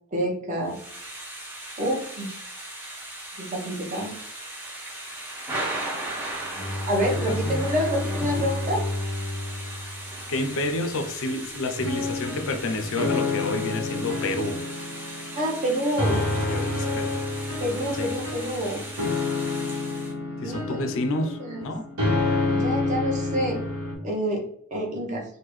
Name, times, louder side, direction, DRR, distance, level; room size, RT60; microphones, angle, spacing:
voice 1, 0.1-0.8 1.8-2.3 3.4-4.1 6.9-8.8 15.3-16.4 17.6-18.9 20.4-20.7 21.4-21.6 22.5-23.6 24.0-24.4 24.7-25.2, equal, 35° right, -1 dB, 0.9 m, -27 dB
Thunder / Rain, 0.6-20.1, right 1 dB, 10° right, 0.7 m, -38 dB
Bowed string instrument, 6.4-10.9, left 1 dB, 10° left, 0.3 m, -31 dB
voice 2, 7.3-7.6 8.4-8.5 10.3-14.6 16.5-17.2 18.0-18.1 20.4-21.8, left 2 dB, 60° left, 7 dB, 0.5 m, -29 dB
sound 1, 11.8-23.9, left 2 dB, 70° right, 1.2 m, -28 dB
3.6 x 2.3 x 3.1 m, 0.67 s
head